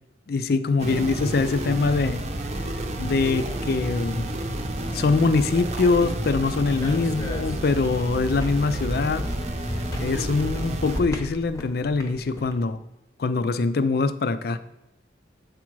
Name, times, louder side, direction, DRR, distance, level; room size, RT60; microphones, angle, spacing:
voice 1, 0.3-2.2 3.0-4.3 4.9-9.3 10.0-12.8 13.2-14.6, left 4 dB, 55° left, 0.4 m, -23 dB
sound 1, 0.8-11.0, right 1 dB, 35° right, 0.7 m, -30 dB
sound 2, 6.7-12.5, left 1 dB, 15° left, 0.7 m, -38 dB
7.3 x 4.9 x 4.6 m
head